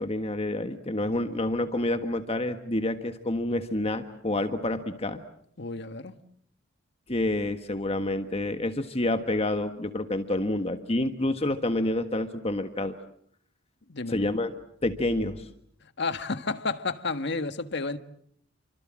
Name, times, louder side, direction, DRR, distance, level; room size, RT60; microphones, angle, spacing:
voice 1, 0.0-5.2 7.1-12.9 14.1-14.5 14.8-15.5, left 1 dB, 30° left, 1.5 m, -28 dB
voice 2, 5.6-6.2 13.9-14.2 16.0-18.0, left 3 dB, 60° left, 1.6 m, -31 dB
30.0 x 24.5 x 7.6 m
head